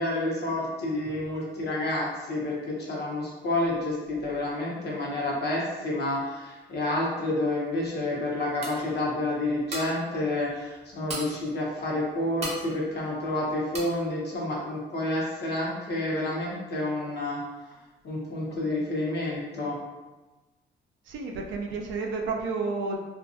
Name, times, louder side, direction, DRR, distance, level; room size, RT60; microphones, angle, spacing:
voice 1, 0.0-17.4 18.0-19.7, left 1 dB, 55° left, -4 dB, 0.9 m, -29 dB
sound 1, 7.8-7.9 8.3-8.4 8.6-9.0 9.5-10.1 10.5-10.6 10.8-11.5 11.9-12.0 12.4-12.7 13.1-13.4 13.7-14.0, right 1 dB, 30° right, 0.7 m, -36 dB
voice 2, 21.1-23.0, right 4 dB, 75° right, 1 dB, 0.5 m, -31 dB
2.4 x 2.3 x 2.6 m, 1.2 s
cardioid pair, 90°, 20 cm